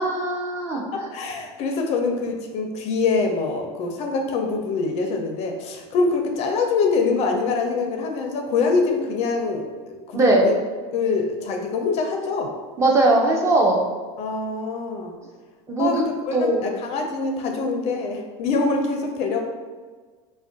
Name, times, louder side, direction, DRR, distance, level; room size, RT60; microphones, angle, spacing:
voice 1, 0.0-1.1 10.1-10.5 12.8-13.8 15.7-15.9 16.3-16.8, right 2 dB, 20° right, 0 dB, 0.4 m, -20 dB
voice 2, 0.9-10.6 10.9-12.5 14.2-15.1 15.8-19.4, left 4 dB, 45° left, 3 dB, 0.4 m, -24 dB
2.4 x 2.1 x 3.7 m, 1.4 s
supercardioid pair, 130°, 15 cm